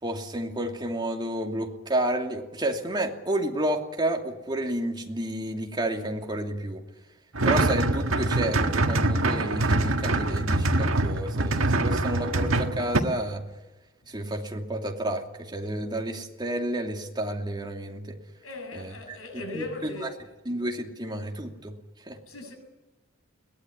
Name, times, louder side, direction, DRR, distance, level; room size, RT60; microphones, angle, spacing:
voice 1, 0.0-6.8 7.4-13.4 14.1-18.2 18.7-18.9 19.5-19.9 20.5-21.7 22.1-22.2, right 1 dB, 20° right, 2.8 m, -30 dB
sound 1, 7.3-13.0, right 2 dB, 85° right, 1.7 m, -24 dB
voice 2, 18.4-20.2 22.3-22.5, left 2 dB, 85° left, 7.4 m, -38 dB
22.0 x 19.0 x 9.9 m
head